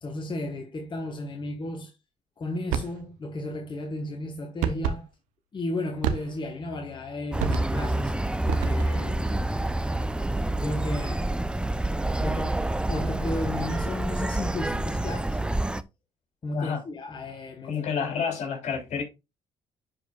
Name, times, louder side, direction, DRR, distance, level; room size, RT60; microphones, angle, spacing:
voice 1, 0.0-1.9 2.4-5.1 5.5-8.1 8.6-9.2 10.6-11.2 12.2-12.6 12.9-15.4 16.4-17.9 18.2-18.3, left 1 dB, 40° left, 1.6 m, -34 dB
sound 1, 2.7-3.0 4.6-5.0 6.0-6.5 7.4-7.9 8.5-9.1, right 8 dB, 85° right, 0.8 m, -29 dB
sound 2, 7.3-15.8, right 1 dB, 5° right, 0.6 m, -27 dB
voice 2, 17.7-19.0, left 6 dB, 70° left, 3.2 m, -29 dB
10.5 x 4.9 x 2.4 m
supercardioid pair, 65°, 12 cm